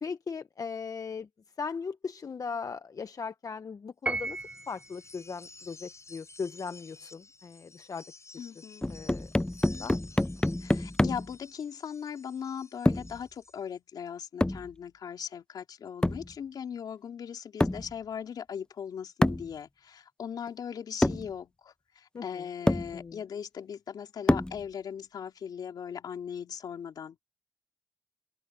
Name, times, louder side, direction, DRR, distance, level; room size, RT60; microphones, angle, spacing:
voice 1, 0.0-1.3 1.6-4.4 4.7-8.0 8.7-10.0 22.1-22.5 22.9-23.2, left 5 dB, 60° left, 0.9 m, -38 dB
Piano, 4.1-5.0, right 2 dB, 20° right, 0.9 m, -34 dB
sound 1, 4.2-13.6, left 3 dB, 45° left, 7.2 m, -53 dB
voice 2, 8.4-8.9 10.6-21.7 22.2-27.2, left 7 dB, 80° left, 4.1 m, -39 dB
sound 2, 8.8-11.4 12.9-13.2 14.4-14.7 16.0-16.3 17.6-17.9 19.2-19.5 20.5-20.6 21.0-21.3 22.2-22.3 22.7-22.9 24.3-24.6, left 1 dB, 15° left, 0.5 m, -27 dB
open air
supercardioid pair, 40°, 7 cm